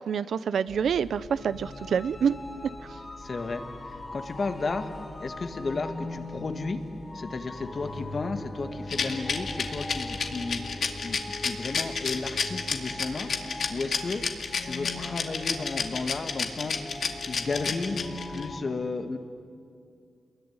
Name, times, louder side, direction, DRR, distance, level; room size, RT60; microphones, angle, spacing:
voice 1, 0.0-2.4, right 7 dB, 80° right, 16 dB, 0.7 m, -27 dB
sound 1, 0.7-18.6, left 2 dB, 25° left, 3.6 m, -41 dB
voice 2, 3.2-4.9 5.2-6.8 7.1-13.3 13.7-14.2 14.6-17.0 17.2-18.0 18.3-19.2, left 3 dB, 45° left, 7 dB, 2.0 m, -33 dB
Bowed string instrument, 7.7-12.6, equal, 10° right, 3.6 m, -43 dB
Rattle, 8.9-18.4, left 5 dB, 65° left, 2.2 m, -30 dB
28.0 x 22.0 x 9.7 m, 2.4 s
cardioid pair, 95°, 0 cm